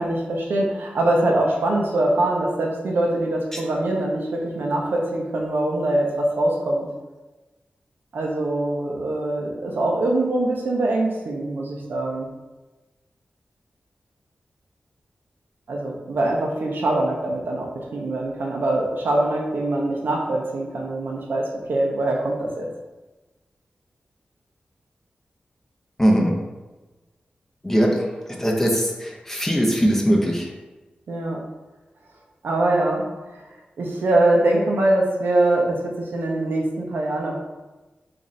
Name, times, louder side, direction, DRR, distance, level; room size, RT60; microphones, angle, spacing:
voice 1, 0.0-6.9 8.1-12.3 15.7-22.7 31.1-31.4 32.4-33.1 33.3-33.4 33.8-37.4, right 1 dB, 85° right, 0 dB, 0.6 m, -23 dB
voice 2, 26.0-26.3 27.6-28.1 28.4-30.5, equal, 10° left, 0 dB, 0.5 m, -20 dB
3.1 x 2.5 x 3.9 m, 1.2 s
wide cardioid pair, 110°, 3 cm